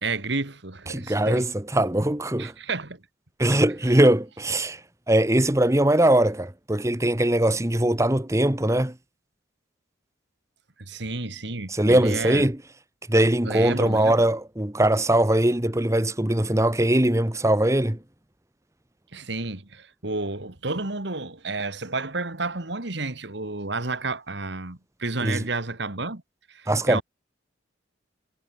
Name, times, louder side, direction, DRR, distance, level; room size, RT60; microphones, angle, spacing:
voice 1, 0.0-1.5 2.4-3.0 3.4-3.6 10.8-12.5 13.4-14.2 19.1-26.2 26.5-27.0, right 3 dB, 60° right, 2.2 m, -31 dB
voice 2, 0.9-2.5 3.4-4.8 5.1-8.9 11.7-12.6 13.1-18.0 25.2-25.4 26.7-27.0, right 1 dB, 15° right, 1.2 m, -21 dB
head